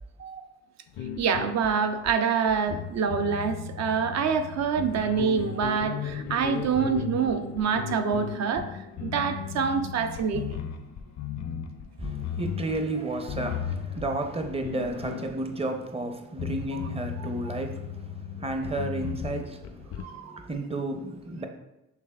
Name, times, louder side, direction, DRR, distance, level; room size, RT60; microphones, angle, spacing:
sound 1, 0.9-15.9 16.4-20.0, left 7 dB, 60° left, 0.5 m, -36 dB
voice 1, 1.2-8.7 9.0-10.6 20.0-20.3, right 6 dB, 60° right, 0.5 m, -26 dB
voice 2, 12.0-21.5, right 2 dB, 20° right, 0.6 m, -32 dB
5.8 x 3.3 x 2.2 m
cardioid pair, 90°, 30 cm